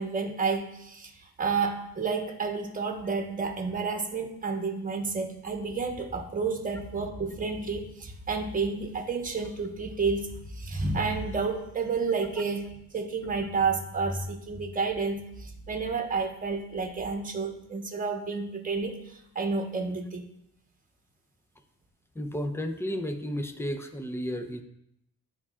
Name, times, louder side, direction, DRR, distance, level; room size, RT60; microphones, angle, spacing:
voice 1, 0.0-20.2, right 4 dB, 20° right, 3 dB, 1.1 m, -30 dB
voice 2, 22.1-24.6, equal, 5° left, 8 dB, 0.6 m, -32 dB
10.5 x 4.5 x 2.4 m, 0.79 s
cardioid pair, 80°, 38 cm